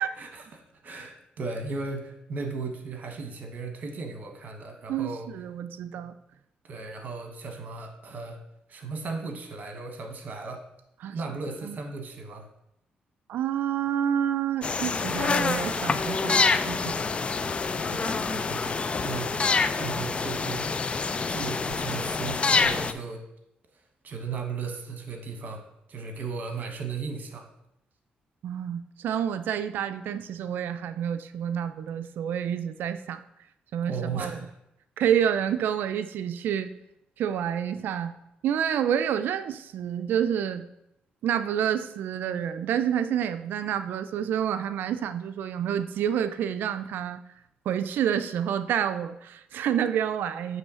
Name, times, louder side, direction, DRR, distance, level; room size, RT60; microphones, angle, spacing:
voice 1, 0.2-5.3 6.6-8.4 8.7-10.6 11.1-12.5 17.9-19.4 19.7-20.8 21.3-23.2 24.0-25.6 25.9-27.5 33.8-34.5, right 4 dB, 55° right, 5 dB, 1.3 m, -36 dB
voice 2, 4.9-6.1 11.0-11.2 11.6-11.8 13.3-17.2 28.4-33.2 33.7-34.4 35.0-36.7 37.2-38.1 38.4-40.6 41.2-47.2 47.7-50.6, right 9 dB, 80° right, 11 dB, 0.4 m, -28 dB
sound 1, 14.6-22.9, left 4 dB, 35° left, 0.4 m, -26 dB
7.8 x 3.2 x 6.2 m, 0.80 s
cardioid pair, 80°, 3 cm